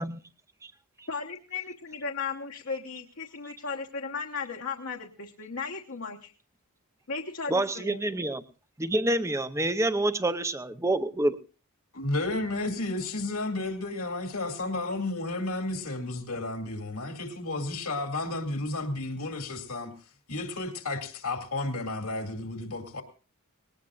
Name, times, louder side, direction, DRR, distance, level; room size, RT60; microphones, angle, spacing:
voice 1, 1.1-6.3 7.1-8.0, left 5 dB, 65° left, 1.2 m, -36 dB
voice 2, 7.5-8.4 8.8-11.4, right 1 dB, 15° right, 0.6 m, -27 dB
voice 3, 11.9-19.9 20.3-23.0, left 2 dB, 80° left, 2.5 m, -32 dB
20.0 x 18.5 x 2.4 m
head